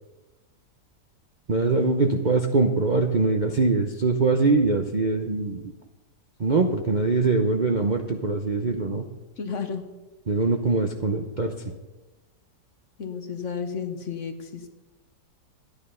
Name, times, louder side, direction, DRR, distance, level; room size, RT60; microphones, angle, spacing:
voice 1, 1.5-5.7 6.4-9.0 10.3-11.5, right 3 dB, 45° right, 2 dB, 0.6 m, -23 dB
voice 2, 9.4-9.8 13.0-14.7, left 6 dB, 50° left, 7 dB, 1.1 m, -32 dB
12.0 x 10.0 x 5.6 m, 1.1 s
omnidirectional pair, 1.8 m